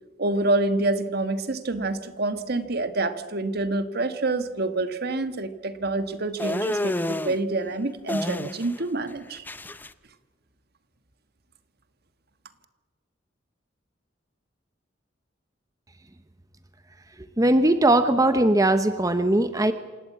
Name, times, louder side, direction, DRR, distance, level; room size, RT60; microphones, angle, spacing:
voice 1, 0.2-9.4, right 2 dB, 55° right, 10 dB, 1.5 m, -27 dB
sound 1, 6.4-7.4 8.1-8.8 9.1-9.9, left 1 dB, 10° left, 0.7 m, -29 dB
voice 2, 17.4-19.7, right 1 dB, 20° right, 10 dB, 0.9 m, -20 dB
27.0 x 18.0 x 8.6 m, 1.4 s
head